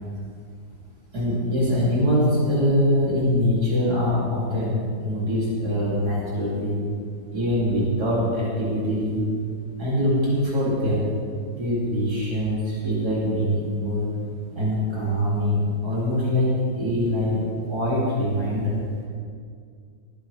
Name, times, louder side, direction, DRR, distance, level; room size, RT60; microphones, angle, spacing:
voice 1, 1.1-4.7 5.0-6.8 7.3-9.2 9.8-11.0 11.5-14.1 14.5-16.5 16.8-17.4 17.7-18.7, equal, 75° right, -7 dB, 3.2 m, -23 dB
21.5 x 10.5 x 3.3 m, 2.2 s
omnidirectional pair, 1.7 m